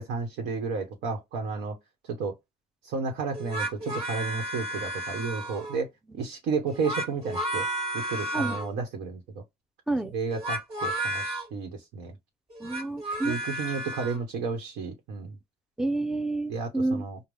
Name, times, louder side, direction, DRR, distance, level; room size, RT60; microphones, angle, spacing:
voice 1, 0.0-1.8 2.1-2.3 2.8-5.9 6.1-7.7 7.9-9.4 10.1-12.1 13.2-15.4 16.5-17.2, right 4 dB, 85° right, 1.1 m, -32 dB
sound 1, 3.3-5.8 6.7-8.7 10.3-11.5 12.5-14.2, right 1 dB, 35° right, 1.6 m, -32 dB
voice 2, 12.6-13.4 15.8-17.0, right 2 dB, 5° right, 0.5 m, -29 dB
5.3 x 2.3 x 3.3 m
cardioid pair, 110°, 17 cm